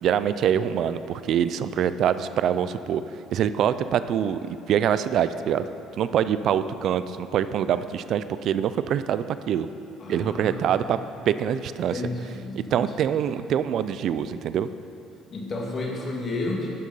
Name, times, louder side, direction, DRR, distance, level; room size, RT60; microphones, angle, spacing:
voice 1, 0.0-3.0 3.3-5.7 6.0-9.7 10.1-11.0 11.3-12.0 12.5-14.7, right 9 dB, 55° right, 13 dB, 0.4 m, -24 dB
voice 2, 10.0-10.9 11.9-13.1 15.3-16.7, left 2 dB, 35° left, -1 dB, 1.8 m, -32 dB
11.5 x 6.5 x 5.5 m, 2.6 s
cardioid pair, 130°, 0 cm